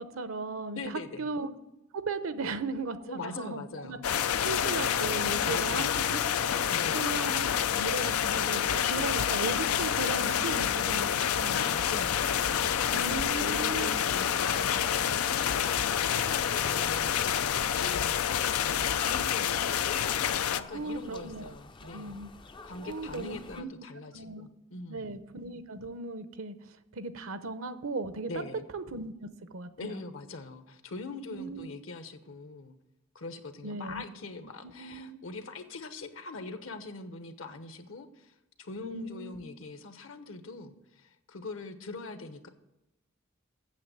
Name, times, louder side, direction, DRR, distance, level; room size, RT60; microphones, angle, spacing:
voice 1, 0.0-1.5 1.9-4.0 4.4-6.2 6.9-11.6 12.9-14.0 20.7-21.5 21.9-22.3 22.8-23.7 24.1-24.5 24.9-26.5 26.9-28.4 28.7-30.0 31.3-31.7 33.6-34.0 34.6-35.2 38.8-39.5, right 3 dB, 70° right, 11 dB, 0.8 m, -37 dB
voice 2, 0.7-1.3 3.0-4.0 5.5-6.1 6.7-7.2 10.3-10.7 11.5-17.4 17.8-18.2 18.5-20.1 20.4-22.2 22.6-25.2 28.3-28.7 29.8-32.7 33.1-42.5, left 3 dB, 65° left, 9 dB, 1.0 m, -42 dB
sound 1, 4.0-20.6, left 9 dB, 90° left, 0.5 m, -28 dB
sound 2, 11.3-23.6, left 3 dB, 20° left, 0.4 m, -46 dB
8.6 x 7.4 x 7.9 m, 0.93 s
head